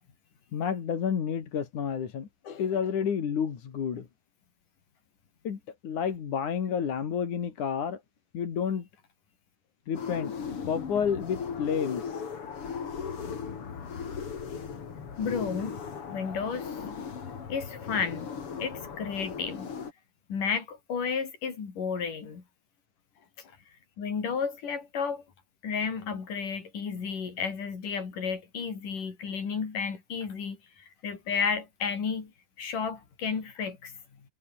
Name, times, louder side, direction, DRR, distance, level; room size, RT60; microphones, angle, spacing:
voice 1, 0.5-4.1 5.4-8.0 8.3-8.9 9.9-10.4 10.7-12.2, left 7 dB, 70° left, 4.1 m, -30 dB
sound 1, 9.9-19.9, left 6 dB, 45° left, 3.3 m, -37 dB
voice 2, 15.2-15.8 16.1-17.1 17.5-18.3 18.6-19.7 20.3-22.4 24.0-25.2 25.6-32.3 32.6-33.9, left 6 dB, 90° left, 5.7 m, -32 dB
omnidirectional pair, 3.6 m